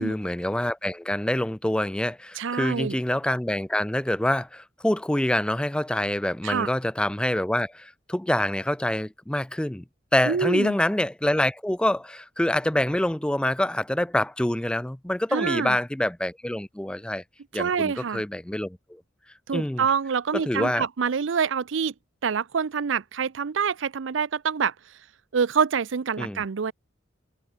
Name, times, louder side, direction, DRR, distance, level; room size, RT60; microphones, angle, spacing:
voice 1, 0.0-9.8 10.1-17.2 17.5-19.0 19.5-19.8 20.3-20.8 26.2-26.4, left 1 dB, 5° left, 0.4 m, -26 dB
voice 2, 2.4-3.0 6.4-6.7 10.3-10.8 15.3-15.8 17.5-18.2 19.5-21.9 22.2-24.7 25.3-26.7, right 6 dB, 85° right, 0.5 m, -26 dB
head